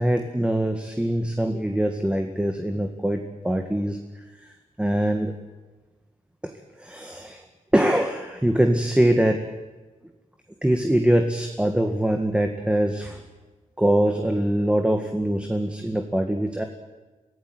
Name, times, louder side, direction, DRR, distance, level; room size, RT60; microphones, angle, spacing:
voice 1, 0.0-5.3 6.4-6.5 6.8-7.4 7.7-9.4 10.6-13.2 13.8-16.6, right 1 dB, 10° right, 4 dB, 1.9 m, -23 dB
25.0 x 16.5 x 9.5 m, 1.2 s
wide cardioid pair, 145°, 14 cm